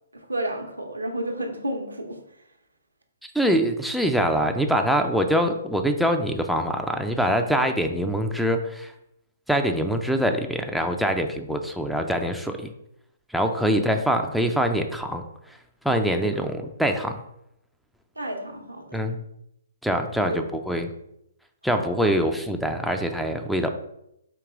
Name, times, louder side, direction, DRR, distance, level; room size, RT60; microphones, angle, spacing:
voice 1, 0.1-2.2 13.7-13.8 18.2-19.0 20.3-20.4 21.7-22.2, right 1 dB, 85° right, 3 dB, 0.8 m, -31 dB
voice 2, 3.3-8.9 9.5-12.7 13.3-15.2 15.8-17.2 18.9-19.2 19.8-20.9 21.6-23.7, equal, ahead, 5 dB, 0.4 m, -24 dB
4.6 x 2.9 x 3.7 m, 0.79 s
figure-of-eight pair, 125°, 0 cm